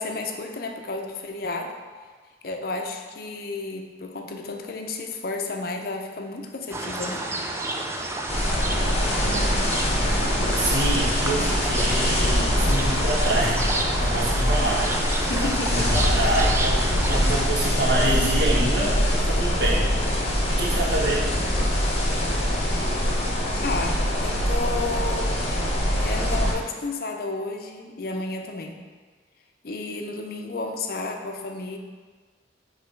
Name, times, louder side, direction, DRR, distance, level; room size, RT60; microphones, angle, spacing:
voice 1, 0.0-1.7 2.4-7.3 15.2-16.0 23.6-25.3 26.0-28.8 29.6-31.8, left 3 dB, 50° left, 3 dB, 0.5 m, -32 dB
sound 1, 6.7-17.5, right 2 dB, 15° right, 0.3 m, -30 dB
sound 2, 8.3-26.5, equal, 35° left, 0.9 m, -23 dB
voice 2, 10.5-13.7 14.0-14.9 15.3-19.8 20.5-21.2, right 1 dB, 60° right, -5 dB, 1.3 m, -27 dB
5.8 x 3.2 x 5.1 m, 1.5 s
head